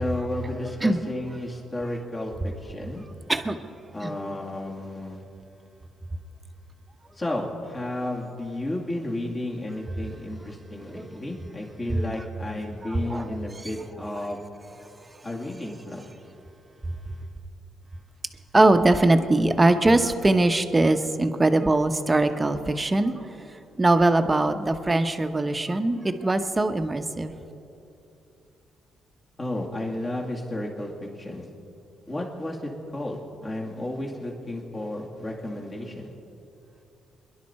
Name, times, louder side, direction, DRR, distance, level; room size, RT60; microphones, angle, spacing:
voice 1, 0.0-2.3 2.6-3.0 3.9-5.2 7.1-14.4 15.2-16.1 29.4-30.9 31.2-31.4 32.1-36.1, left 1 dB, 30° left, -1 dB, 2.3 m, -32 dB
voice 2, 11.9-12.2 12.6-13.3 18.5-27.3, right 2 dB, 20° right, 8 dB, 0.9 m, -22 dB
24.0 x 11.5 x 4.3 m, 2.7 s
cardioid pair, 90°, 0 cm